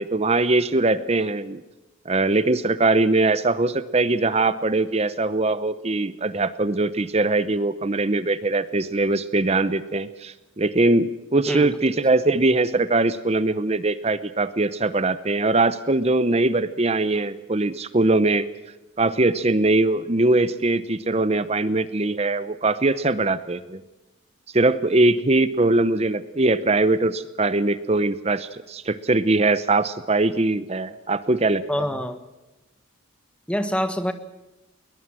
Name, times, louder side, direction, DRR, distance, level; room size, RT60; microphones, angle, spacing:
voice 1, 0.0-1.6 2.1-18.5 19.0-23.8 24.5-31.8, right 2 dB, 30° right, 14 dB, 0.7 m, -21 dB
voice 2, 31.7-32.2 33.5-34.1, equal, 5° left, 9 dB, 1.4 m, -25 dB
21.0 x 20.5 x 7.6 m, 1.0 s
head